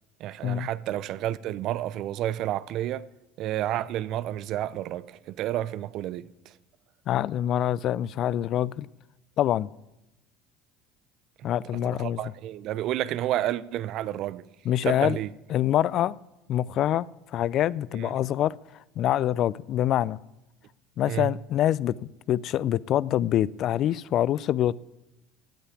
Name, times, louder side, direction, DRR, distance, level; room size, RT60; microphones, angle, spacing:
voice 1, 0.2-3.1 3.4-6.3 11.4-11.5 11.8-14.5 14.8-15.3 17.9-18.1 21.1-21.3, right 13 dB, 55° right, 0.5 m, -30 dB
voice 2, 7.1-8.9 9.4-9.7 11.4-12.2 14.7-15.2 15.5-16.2 16.5-18.5 19.0-20.2 21.0-21.9 22.3-24.8, left 12 dB, 55° left, 0.3 m, -25 dB
16.0 x 5.6 x 9.7 m
hypercardioid pair, 65°, 0 cm